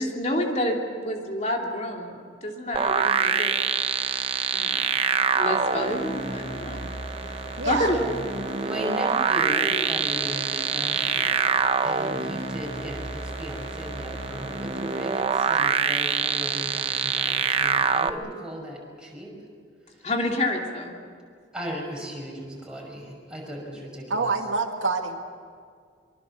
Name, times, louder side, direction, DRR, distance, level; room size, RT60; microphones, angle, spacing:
voice 1, 0.0-2.1 2.4-3.6 4.5-5.0 5.3-6.9 7.6-8.0 11.9-12.2 20.0-21.0, left 1 dB, 35° left, 1 dB, 3.0 m, -28 dB
sound 1, 2.7-18.1, right 5 dB, 30° right, 0.7 m, -25 dB
sound 2, 5.8-15.2, right 2 dB, 65° left, 4.0 m, -41 dB
voice 2, 7.6-7.9 24.1-25.2, right 3 dB, 80° right, 4 dB, 2.3 m, -26 dB
voice 3, 8.6-11.4 11.8-19.3 21.5-24.3, equal, 5° right, -2 dB, 5.6 m, -36 dB
24.5 x 24.0 x 7.1 m, 2.1 s
head